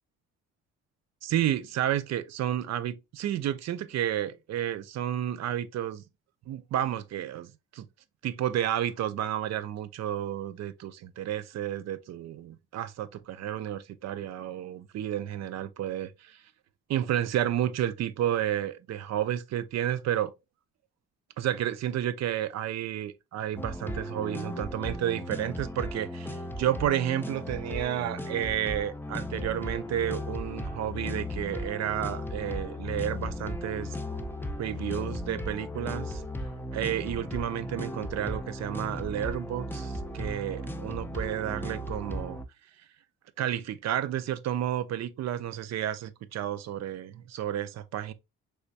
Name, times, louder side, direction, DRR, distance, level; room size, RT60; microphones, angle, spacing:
voice 1, 1.2-6.0 6.5-7.9 8.2-16.4 16.9-20.3 21.4-34.0 34.6-36.2 36.7-42.4 43.4-48.1, right 11 dB, 60° right, 0.5 m, -31 dB
sound 1, 23.6-42.5, left 1 dB, 5° left, 0.4 m, -36 dB
3.4 x 3.0 x 2.7 m
cardioid pair, 90°, 30 cm